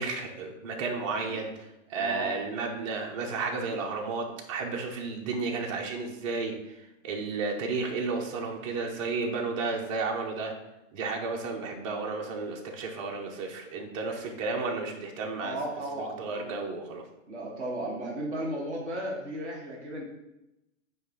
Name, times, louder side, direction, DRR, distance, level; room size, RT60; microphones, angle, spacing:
voice 1, 0.0-10.5 10.9-15.6 16.0-17.0, right 4 dB, 25° right, 1 dB, 0.9 m, -33 dB
voice 2, 2.0-2.4 15.4-16.6 17.3-20.0, right 1 dB, 5° left, -10 dB, 0.5 m, -35 dB
9.1 x 3.3 x 5.9 m, 0.90 s
hypercardioid pair, 165°, 39 cm